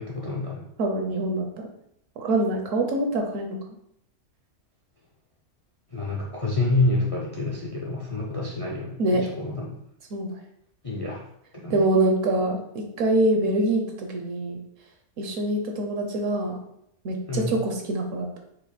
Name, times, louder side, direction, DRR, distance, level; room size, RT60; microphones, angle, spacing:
voice 1, 0.0-0.6 5.9-9.8 10.8-11.2 11.5-11.8 17.3-17.5, left 2 dB, 40° left, -2 dB, 0.5 m, -28 dB
voice 2, 0.8-1.5 2.2-3.6 9.0-9.2 10.1-10.3 11.7-14.6 15.2-16.6 17.0-18.4, right 2 dB, 65° right, 2 dB, 1.0 m, -24 dB
4.9 x 2.5 x 4.2 m, 0.74 s
omnidirectional pair, 1.6 m